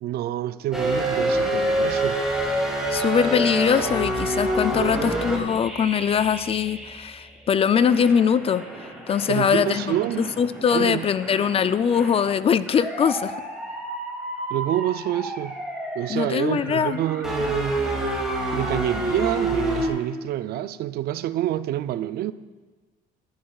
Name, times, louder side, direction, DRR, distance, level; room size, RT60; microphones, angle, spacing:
voice 1, 0.0-2.2 4.8-5.0 9.3-10.3 10.7-11.1 14.5-15.6 15.9-17.8 18.5-22.3, right 13 dB, 70° right, 0.4 m, -27 dB
sound 1, 0.7-7.3 7.7-19.9, right 1 dB, 5° right, 2.5 m, -28 dB
voice 2, 2.9-8.6 9.1-10.0 10.4-13.3 16.1-17.0, left 7 dB, 35° left, 0.4 m, -22 dB
15.0 x 11.0 x 2.4 m
cardioid pair, 110°, 17 cm